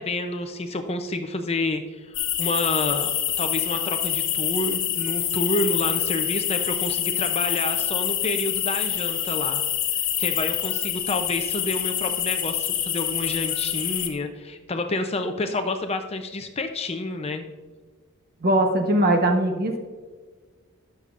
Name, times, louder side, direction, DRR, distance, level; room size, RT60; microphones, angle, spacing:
voice 1, 0.0-3.1 3.4-9.6 9.9-17.4, left 2 dB, 30° left, 6 dB, 0.6 m, -29 dB
sound 1, 2.1-14.1, left 10 dB, 65° left, 1.3 m, -26 dB
voice 2, 18.4-19.8, right 1 dB, 45° right, 3 dB, 1.0 m, -20 dB
20.0 x 6.8 x 2.5 m, 1.4 s
head